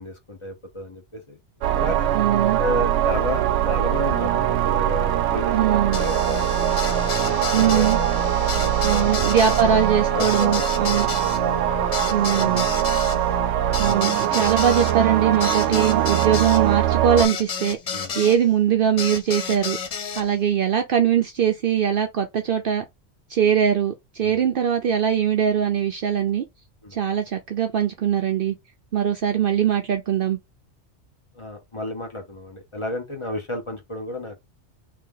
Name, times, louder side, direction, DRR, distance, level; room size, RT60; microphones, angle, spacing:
voice 1, 0.0-1.4 1.6-2.1 2.6-6.6 7.1-9.1 9.6-9.7 10.1-10.6 12.2-12.5 17.9-18.1 24.2-24.4 26.8-27.0 31.3-34.4, left 1 dB, 25° left, 1.0 m, -32 dB
sound 1, 1.6-17.3, right 12 dB, 85° right, 0.9 m, -22 dB
voice 2, 2.1-2.6 5.5-6.0 7.5-8.0 8.8-11.1 12.1-12.7 13.8-17.8 18.1-19.8 20.2-22.8 23.3-26.4 26.9-28.6 28.9-30.4, right 8 dB, 60° right, 0.6 m, -21 dB
sound 2, 5.9-18.4 19.0-20.2, left 6 dB, 55° left, 0.4 m, -31 dB
3.3 x 2.9 x 3.7 m
omnidirectional pair, 1.2 m